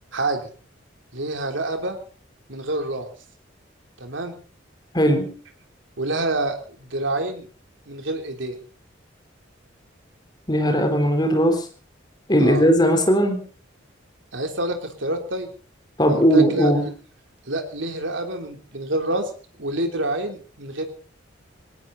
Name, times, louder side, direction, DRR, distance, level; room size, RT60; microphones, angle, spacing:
voice 1, 0.1-0.4 1.1-2.0 2.5-3.1 4.0-4.3 6.0-7.5 7.9-8.6 12.4-12.6 14.3-15.5 16.1-16.9 17.5-19.3 19.6-20.9, right 2 dB, 75° right, 5 dB, 3.3 m, -27 dB
voice 2, 4.9-5.3 10.5-11.7 12.3-13.4 16.0-16.8, equal, 20° left, 5 dB, 3.7 m, -18 dB
20.0 x 18.0 x 4.0 m, 0.38 s
head